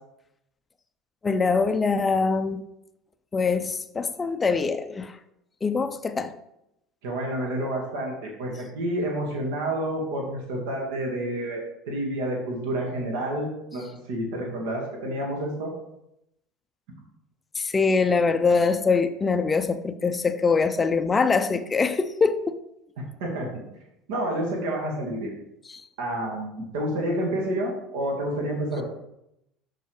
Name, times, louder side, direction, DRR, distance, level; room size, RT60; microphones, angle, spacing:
voice 1, 1.2-2.6 3.3-5.1 5.6-6.3 17.6-22.5 25.7-25.8, left 4 dB, 20° left, 0.5 m, -23 dB
voice 2, 7.0-11.6 11.9-15.7 23.0-23.5 24.1-25.3 26.0-28.8, right 1 dB, 65° right, 1.8 m, -29 dB
11.5 x 4.5 x 3.3 m
figure-of-eight pair, 65°, 0 cm